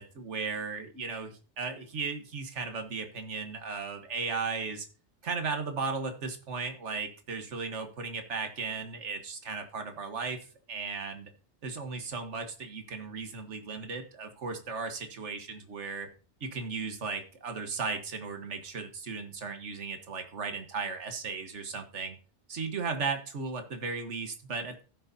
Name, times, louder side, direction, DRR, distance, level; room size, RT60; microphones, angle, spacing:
voice 1, 0.0-4.9 5.2-11.3 11.6-16.1 16.4-22.2 22.5-24.8, right 4 dB, 85° right, 6 dB, 1.6 m, -36 dB
15.5 x 6.4 x 2.7 m, 0.38 s
omnidirectional pair, 1.2 m